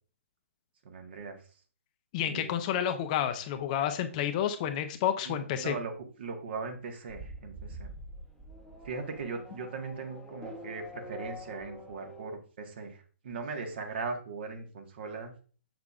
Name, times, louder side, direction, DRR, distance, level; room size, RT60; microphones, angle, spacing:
voice 1, 0.8-1.4 2.2-2.5 5.2-7.9 8.8-15.3, right 4 dB, 50° right, 4 dB, 1.5 m, -39 dB
voice 2, 2.1-5.7, left 10 dB, 35° left, 8 dB, 0.7 m, -30 dB
Race car auto racing / Accelerating revving vroom, 7.1-12.3, equal, 5° left, 1.0 m, -46 dB
6.9 x 6.6 x 2.4 m, 0.40 s
figure-of-eight pair, 130°, 7 cm